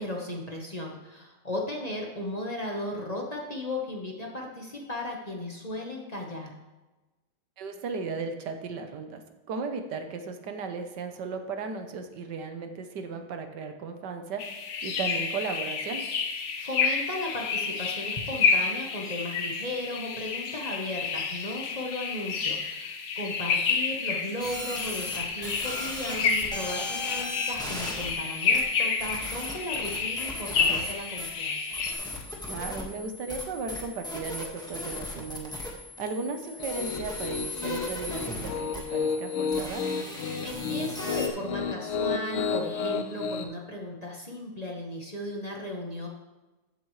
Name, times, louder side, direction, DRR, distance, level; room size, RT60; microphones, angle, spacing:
voice 1, 0.0-6.5 16.6-31.8 40.4-46.1, left 1 dB, 30° left, -1 dB, 0.8 m, -36 dB
voice 2, 7.6-9.2 9.5-16.0 32.5-35.5 36.0-39.9, right 4 dB, 60° right, 6 dB, 1.4 m, -35 dB
sound 1, 14.4-31.9, left 5 dB, 90° left, 0.6 m, -30 dB
sound 2, 24.4-41.3, left 1 dB, ahead, 1.2 m, -38 dB
Piano, 36.6-43.4, left 5 dB, 75° left, 1.5 m, -32 dB
14.0 x 8.2 x 3.2 m, 1.1 s
omnidirectional pair, 2.4 m